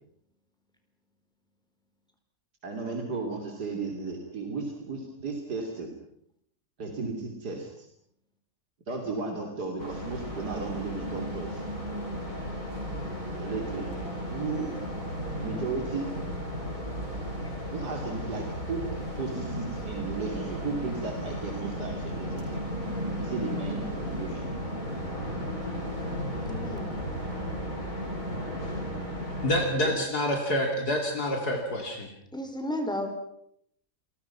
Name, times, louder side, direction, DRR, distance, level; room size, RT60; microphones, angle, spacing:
voice 1, 2.6-5.9 6.8-7.9 8.9-11.6 13.4-13.9 14.3-14.7 15.3-16.1 17.7-22.6 23.2-24.5 29.8-30.0, right 3 dB, 90° right, 2 dB, 3.6 m, -34 dB
sound 1, 9.8-29.6, equal, 55° left, 8.1 m, -34 dB
voice 2, 26.4-26.9 32.3-33.1, left 1 dB, 5° left, 4 dB, 4.2 m, -32 dB
voice 3, 29.4-32.1, left 1 dB, 75° left, 2 dB, 3.4 m, -27 dB
28.5 x 22.5 x 5.9 m, 0.71 s
omnidirectional pair, 1.7 m